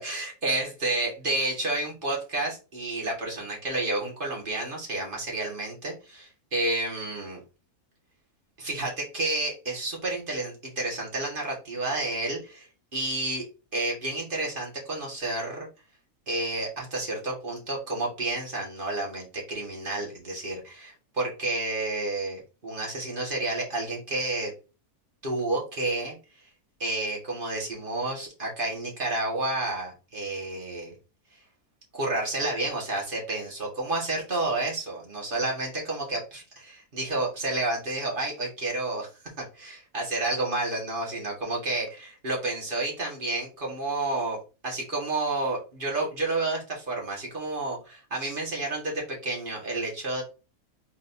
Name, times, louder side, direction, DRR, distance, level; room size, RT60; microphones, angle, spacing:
voice 1, 0.0-7.4 8.6-13.4 13.7-15.7 16.3-24.5 25.2-26.2 26.8-30.9 31.9-39.1 39.4-44.4 44.6-50.2, right 2 dB, 35° right, -2 dB, 1.8 m, -30 dB
3.9 x 3.9 x 2.6 m, 0.32 s
omnidirectional pair, 1.6 m